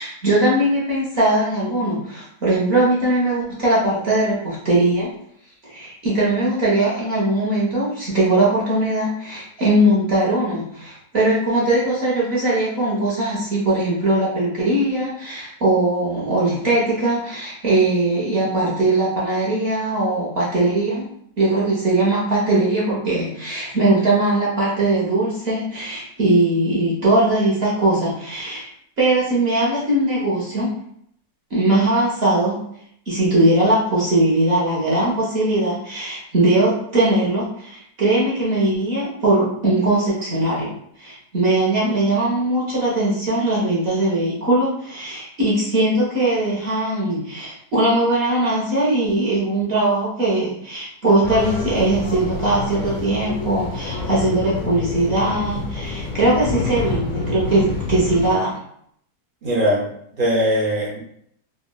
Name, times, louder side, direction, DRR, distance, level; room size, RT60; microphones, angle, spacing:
voice 1, 0.0-5.1 5.6-21.1 21.4-28.7 29.0-30.7 31.5-32.6 33.1-40.7 41.0-58.6, right 2 dB, 50° right, -6 dB, 0.9 m, -20 dB
sound 1, 51.2-58.3, left 3 dB, 50° left, 0.5 m, -28 dB
voice 2, 59.4-59.8 60.2-61.0, equal, 65° right, -3 dB, 0.5 m, -20 dB
3.7 x 2.2 x 2.2 m, 0.69 s
omnidirectional pair, 1.7 m